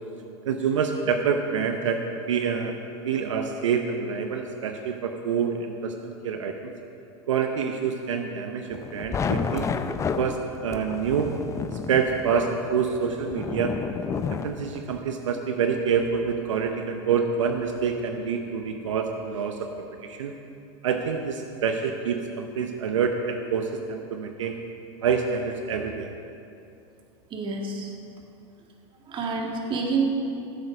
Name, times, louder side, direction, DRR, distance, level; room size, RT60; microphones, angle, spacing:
voice 1, 0.5-2.7 3.0-6.7 7.3-9.7 10.2-11.4 11.9-13.8 14.3-19.7 20.0-20.4 20.8-24.6 25.0-26.1, right 6 dB, 80° right, 5 dB, 0.9 m, -27 dB
sound 1, 8.7-15.0, left 6 dB, 20° left, 0.5 m, -31 dB
voice 2, 27.3-27.9 29.1-30.0, right 4 dB, 30° right, 1 dB, 2.2 m, -28 dB
15.5 x 8.1 x 5.2 m, 2.7 s
hypercardioid pair, 110°, 16 cm